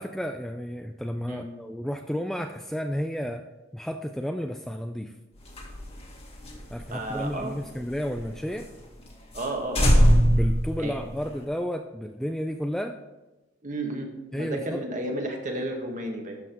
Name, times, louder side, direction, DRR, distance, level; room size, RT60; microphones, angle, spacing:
voice 1, 0.0-3.4 3.7-5.1 6.7-8.7 10.3-13.0 14.3-14.8, equal, ahead, 5 dB, 0.3 m, -32 dB
sound 1, 5.4-8.2 8.6-8.7 9.0-9.1 9.3-9.5 9.7-11.4, equal, 30° left, 1.8 m, -23 dB
voice 2, 6.9-7.5 9.3-10.1 10.8-11.0 13.6-16.4, right 1 dB, 40° right, 2 dB, 1.6 m, -32 dB
12.5 x 5.8 x 4.5 m, 1.1 s
head